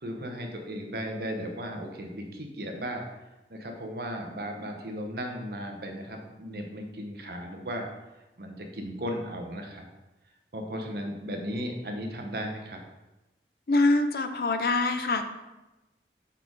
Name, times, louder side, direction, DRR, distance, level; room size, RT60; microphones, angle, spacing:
voice 1, 0.0-3.0 3.5-7.9 8.4-9.9 10.5-12.8, equal, 60° right, 3 dB, 0.9 m, -36 dB
voice 2, 13.7-15.3, left 2 dB, 55° left, 8 dB, 0.5 m, -24 dB
5.4 x 4.3 x 4.6 m, 1.0 s
head